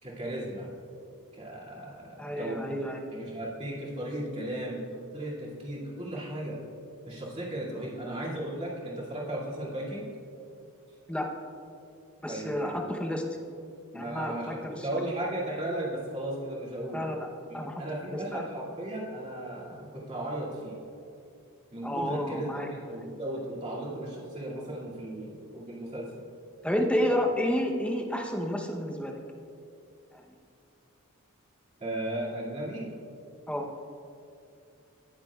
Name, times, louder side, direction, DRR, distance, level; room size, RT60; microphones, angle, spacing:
voice 1, 0.0-0.7 1.3-2.8 3.1-6.6 7.0-10.1 12.3-12.9 13.9-17.0 17.5-20.8 21.7-26.1 27.0-27.2 31.8-32.9, right 1 dB, 30° right, -7 dB, 2.4 m, -36 dB
voice 2, 2.2-3.0 11.1-11.3 12.2-13.2 13.9-14.8 16.9-17.3 17.5-18.4 21.8-22.7 26.6-29.1 33.5-33.7, equal, 5° left, 1 dB, 0.8 m, -30 dB
19.0 x 7.4 x 2.4 m, 2.5 s
head